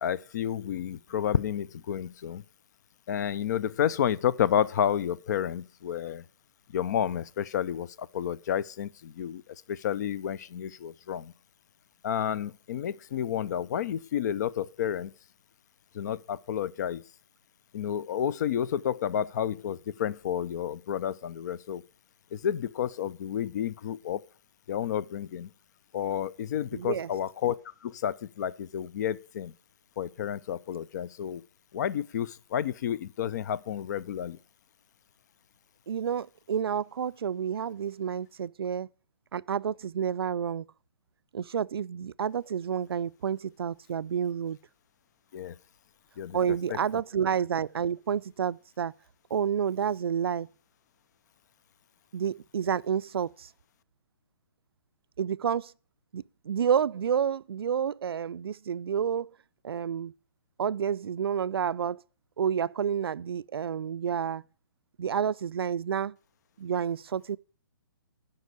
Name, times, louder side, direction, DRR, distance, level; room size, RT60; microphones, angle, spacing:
voice 1, 0.0-2.4 3.1-6.2 6.7-9.4 9.7-11.3 12.0-15.1 15.9-17.0 17.7-21.8 22.3-24.2 24.7-25.5 25.9-27.6 27.8-29.5 30.0-31.4 31.7-34.4 45.3-45.5 46.2-46.4 46.7-46.8, left 9 dB, 45° left, 0.5 m, -30 dB
voice 2, 26.7-27.1 35.9-38.9 39.3-40.7 41.3-44.6 46.3-48.9 49.3-50.5 52.1-53.5 55.2-55.7 56.1-59.3 59.6-60.1 60.6-62.0 62.4-64.4 65.0-66.2 66.6-67.4, right 8 dB, 80° right, 0.4 m, -29 dB
9.5 x 5.4 x 8.0 m
hypercardioid pair, 145°, 12 cm